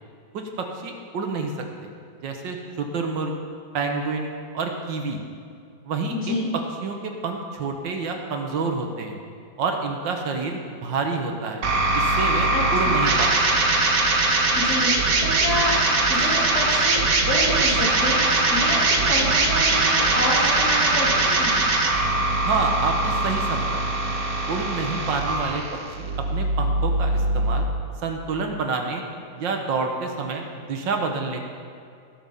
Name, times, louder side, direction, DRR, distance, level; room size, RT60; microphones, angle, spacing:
voice 1, 0.3-1.5 1.8-1.9 2.2-3.3 3.7-5.2 5.9-9.2 9.6-11.6 11.9-13.5 22.5-23.8 24.5-25.6 26.0-27.7 28.0-29.0 29.3-31.4, right 4 dB, 75° right, 3 dB, 1.8 m, -28 dB
voice 2, 6.1-6.5 12.5-13.0 14.5-18.2 18.5-21.5, left 1 dB, 55° left, -5 dB, 3.0 m, -28 dB
sound 1, 11.6-27.6, right 2 dB, 55° right, 1.4 m, -21 dB
18.0 x 6.1 x 5.4 m, 2.3 s
omnidirectional pair, 2.0 m